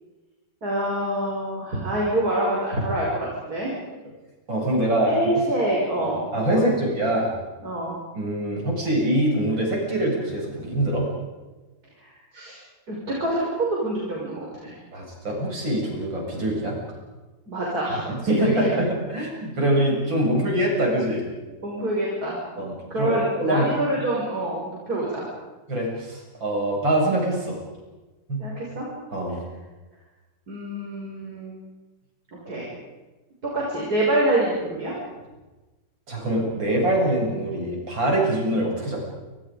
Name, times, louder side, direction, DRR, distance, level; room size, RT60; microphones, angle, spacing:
voice 1, 0.6-3.7 5.0-6.6 7.6-8.0 11.9-12.6 12.9-14.8 17.5-18.6 21.6-22.4 22.9-25.3 28.4-28.9 30.5-31.5 32.4-32.7 33.4-34.9, right 1 dB, 50° right, -4 dB, 6.7 m, -26 dB
voice 2, 4.5-5.3 6.0-7.3 8.1-11.0 14.9-16.8 18.1-21.2 22.6-23.7 25.7-27.6 28.3-28.4 29.1-29.4 36.1-39.0, right 1 dB, 75° right, -1 dB, 8.5 m, -24 dB
29.0 x 27.5 x 5.3 m, 1.2 s
omnidirectional pair, 2.1 m